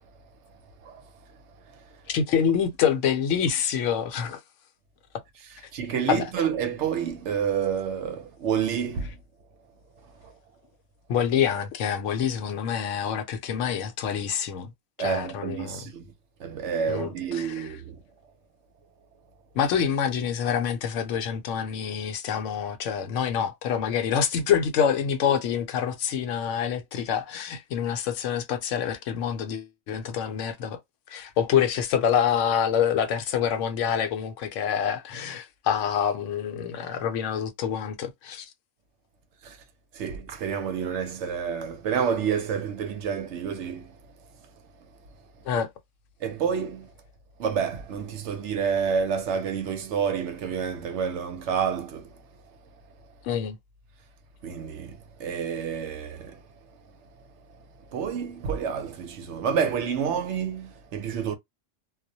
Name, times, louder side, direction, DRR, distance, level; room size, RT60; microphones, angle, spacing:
voice 1, 2.1-4.4 6.1-6.3 11.1-14.7 15.0-15.8 16.9-17.7 19.5-30.8 31.1-38.5 45.5-45.7 53.2-53.6, left 8 dB, 75° left, 0.9 m, -26 dB
voice 2, 5.7-9.1 10.2-10.3 15.0-16.1 16.4-18.0 39.4-39.6 39.9-44.0 46.2-46.9 47.4-52.1 54.4-56.4 57.9-61.4, right 7 dB, 70° right, 0.8 m, -29 dB
2.3 x 2.1 x 2.6 m
omnidirectional pair, 1.3 m